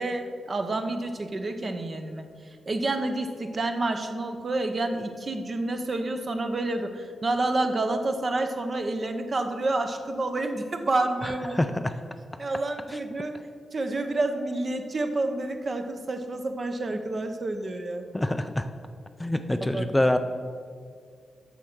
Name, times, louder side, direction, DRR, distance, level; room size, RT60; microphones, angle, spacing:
voice 1, 0.0-2.3 2.7-11.6 12.4-13.4 13.7-18.1 19.6-19.9, right 2 dB, 40° right, 6 dB, 0.9 m, -29 dB
voice 2, 11.2-11.9 12.9-13.0 16.9-17.0 18.1-18.7 19.2-20.2, left 1 dB, 10° left, 8 dB, 0.4 m, -26 dB
8.2 x 6.5 x 6.1 m, 2.1 s
cardioid pair, 95°, 0 cm